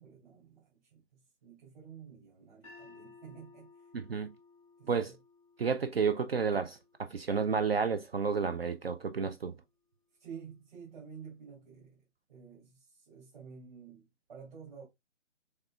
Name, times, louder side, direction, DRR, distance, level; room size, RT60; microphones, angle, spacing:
voice 1, 0.0-3.9 4.8-5.2 10.2-14.9, right 6 dB, 40° right, 2.7 m, -51 dB
sound 1, 2.6-8.8, left 3 dB, ahead, 0.7 m, -59 dB
voice 2, 3.9-4.3 4.9-5.1 5.6-9.6, right 5 dB, 55° right, 0.5 m, -31 dB
6.5 x 3.4 x 2.3 m
figure-of-eight pair, 145°, 37 cm